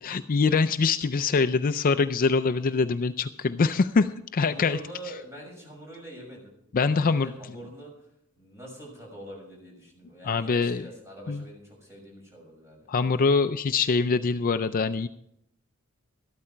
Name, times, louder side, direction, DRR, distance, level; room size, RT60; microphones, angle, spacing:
voice 1, 0.0-4.8 6.7-7.3 10.2-10.9 11.3-11.4 12.9-15.1, left 4 dB, 40° left, 10 dB, 0.4 m, -24 dB
voice 2, 4.4-6.5 6.8-7.9 8.4-12.9, right 1 dB, 15° right, -2 dB, 6.3 m, -44 dB
13.5 x 12.5 x 4.5 m, 0.76 s
head